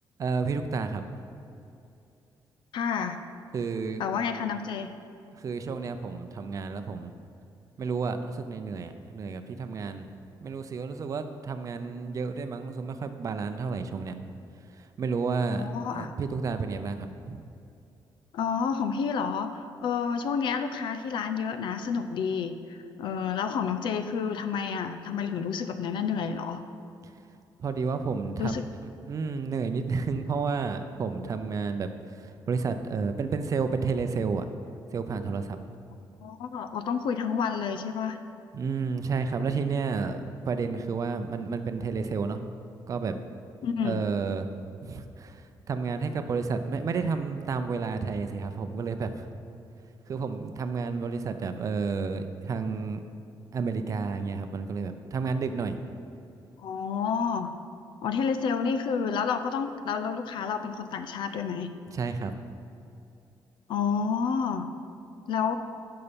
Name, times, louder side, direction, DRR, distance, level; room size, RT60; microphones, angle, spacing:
voice 1, 0.2-1.0 3.5-4.1 5.4-7.1 7.8-10.1 10.4-14.1 14.8-17.4 27.6-34.5 34.9-35.6 38.5-42.4 42.9-43.2 43.8-44.5 44.8-49.3 50.1-53.0 53.5-55.8 61.9-62.3, right 5 dB, 40° right, 8 dB, 0.5 m, -31 dB
voice 2, 2.7-3.2 4.0-4.9 15.5-16.1 18.3-26.6 28.4-28.6 36.2-38.2 43.6-44.0 56.6-57.6 58.0-61.7 63.7-64.7 65.3-65.5, left 6 dB, 75° left, 9 dB, 0.6 m, -29 dB
11.0 x 5.7 x 5.2 m, 2.6 s
cardioid pair, 150°, 8 cm